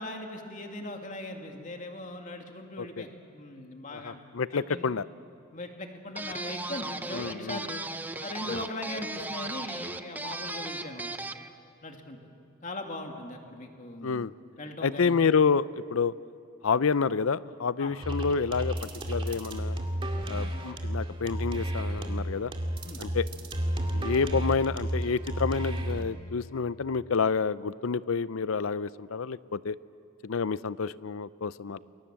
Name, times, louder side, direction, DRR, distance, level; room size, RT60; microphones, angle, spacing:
voice 1, 0.0-4.3 4.7-4.9 5.5-7.8 8.2-11.1 11.8-12.2 12.6-14.3 14.6-15.2 17.8-17.9 22.8-23.0 31.7-31.8, left 1 dB, 35° left, 3 dB, 2.4 m, -39 dB
voice 2, 3.9-5.0 7.1-7.6 8.5-8.6 14.0-14.3 14.8-16.1 16.6-19.8 20.3-22.5 23.0-23.2 23.9-29.8 30.2-31.8, left 5 dB, 75° left, 17 dB, 0.6 m, -28 dB
sound 1, 6.2-11.5, right 2 dB, 10° right, 0.7 m, -37 dB
sound 2, 18.0-26.0, right 1 dB, 25° right, 2.3 m, -32 dB
29.0 x 22.5 x 7.6 m, 2.6 s
head